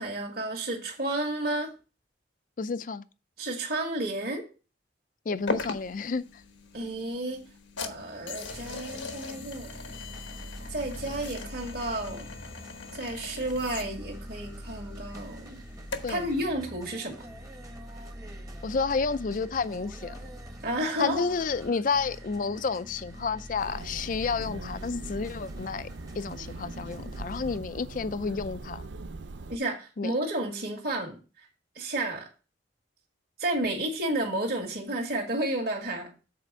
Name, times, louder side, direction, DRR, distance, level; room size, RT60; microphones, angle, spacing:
voice 1, 0.0-1.7 3.4-4.5 6.7-7.4 7.8-9.7 10.7-12.3 12.9-15.6 16.1-17.3 20.6-21.2 29.5-31.2 31.8-32.3 33.4-36.1, right 1 dB, 55° right, 1.9 m, -31 dB
voice 2, 2.6-3.0 5.3-6.4 16.0-16.3 18.6-20.3 21.0-25.9 26.2-28.8 30.0-30.1, left 4 dB, 45° left, 0.4 m, -30 dB
sound 1, 5.5-16.3, left 3 dB, 80° left, 1.1 m, -40 dB
sound 2, 7.8-27.6, equal, 20° right, 1.0 m, -44 dB
sound 3, 23.6-29.6, right 3 dB, 70° right, 0.6 m, -41 dB
7.5 x 4.4 x 6.1 m
head